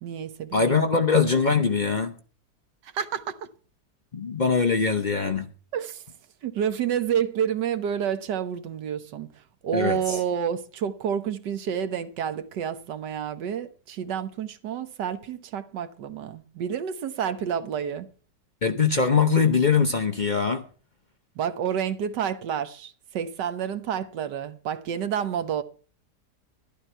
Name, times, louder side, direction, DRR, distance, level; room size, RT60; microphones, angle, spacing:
voice 1, 0.0-0.9 2.8-3.4 5.7-6.0 6.4-18.1 21.4-25.6, right 8 dB, 85° right, 1.6 m, -29 dB
voice 2, 0.5-2.1 4.1-5.5 9.7-10.2 18.6-20.6, left 5 dB, 40° left, 0.6 m, -22 dB
12.0 x 11.5 x 4.4 m
omnidirectional pair, 1.8 m